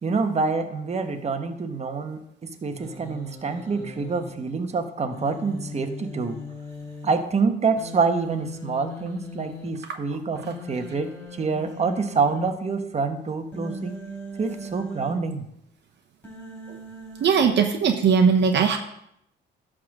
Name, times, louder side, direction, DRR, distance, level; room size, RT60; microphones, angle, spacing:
voice 1, 0.0-6.4 7.0-14.0 14.4-15.4, right 4 dB, 35° right, 6 dB, 1.0 m, -26 dB
Human voice, 2.8-4.3 5.1-7.1 7.8-9.7 10.3-12.5 13.5-15.1 16.2-17.5, left 2 dB, 10° left, 3.9 m, -39 dB
voice 2, 17.2-18.8, right 6 dB, 60° right, 6 dB, 0.9 m, -19 dB
11.0 x 3.7 x 6.4 m, 0.76 s
cardioid pair, 90°, 20 cm